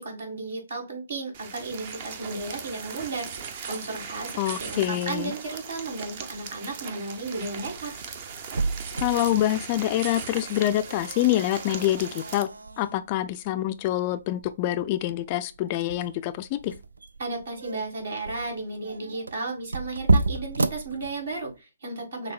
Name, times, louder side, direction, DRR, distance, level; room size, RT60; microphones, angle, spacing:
voice 1, 0.0-8.0 17.2-22.3, right 3 dB, 65° right, 1.9 m, -34 dB
sound 1, 1.3-12.4, right 6 dB, 40° right, 0.6 m, -39 dB
voice 2, 4.4-5.3 9.0-12.5 12.8-16.7, left 14 dB, 35° left, 0.3 m, -26 dB
sound 2, 7.4-21.6, right 3 dB, 80° right, 0.3 m, -32 dB
6.4 x 2.1 x 2.3 m
figure-of-eight pair, 140°, 0 cm